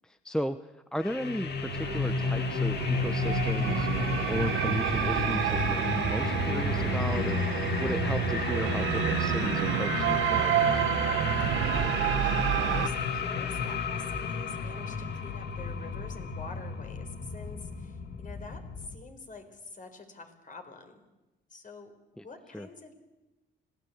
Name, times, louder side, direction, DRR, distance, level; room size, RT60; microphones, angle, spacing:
voice 1, 0.0-3.9 4.3-7.4 7.8-10.8 22.2-22.3 22.5-22.7, equal, 5° left, 11 dB, 0.8 m, -35 dB
sound 1, 1.0-18.9, left 5 dB, 55° left, 2.4 m, -32 dB
sound 2, 1.4-12.9, right 13 dB, 85° right, 0.9 m, -29 dB
voice 2, 11.7-21.0 21.5-21.9 22.2-23.0, left 4 dB, 40° left, 6 dB, 4.5 m, -46 dB
25.5 x 17.5 x 8.6 m, 1.1 s
cardioid pair, 90°, 20 cm